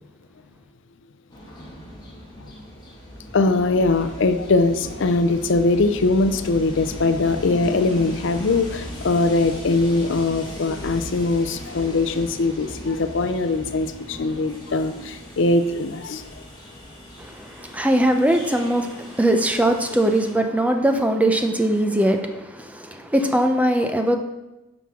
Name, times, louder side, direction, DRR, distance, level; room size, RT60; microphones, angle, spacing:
Train, 1.3-20.3, equal, 20° left, 1.9 m, -38 dB
voice 1, 3.3-16.2, left 3 dB, 60° left, 0.5 m, -21 dB
voice 2, 17.2-24.2, right 1 dB, 5° right, 0.6 m, -21 dB
9.6 x 5.9 x 3.7 m
head